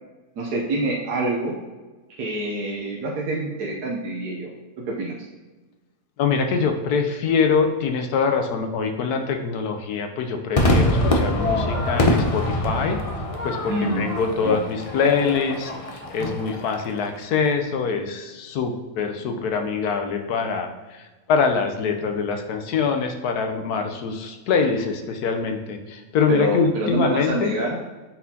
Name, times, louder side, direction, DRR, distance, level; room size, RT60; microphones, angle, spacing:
voice 1, 0.4-1.6 2.2-4.5 4.8-5.1 13.6-14.1 14.4-14.6 26.3-27.8, right 1 dB, 90° right, -3 dB, 1.4 m, -26 dB
voice 2, 6.2-13.0 13.4-27.5, left 5 dB, 75° left, 5 dB, 1.3 m, -24 dB
Crowd / Fireworks, 10.6-17.1, left 1 dB, 45° left, 0.4 m, -24 dB
8.3 x 4.1 x 2.8 m, 1.2 s
omnidirectional pair, 1.7 m